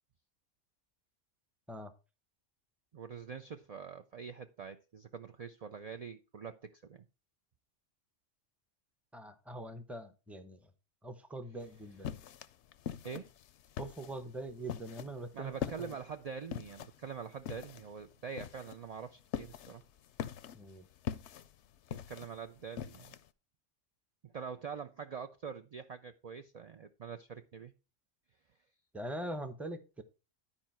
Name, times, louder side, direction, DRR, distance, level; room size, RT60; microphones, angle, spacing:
voice 1, 2.9-7.0 13.0-13.3 15.3-19.8 21.9-23.2 24.2-27.7, right 6 dB, 60° right, 0.4 m, -44 dB
voice 2, 9.1-10.7 11.0-12.2 13.8-15.5 15.8-15.9 20.5-20.9 28.9-30.0, right 1 dB, ahead, 0.6 m, -43 dB
sound 1, 11.6-23.3, left 9 dB, 70° left, 0.8 m, -43 dB
11.5 x 4.8 x 4.3 m
omnidirectional pair, 1.3 m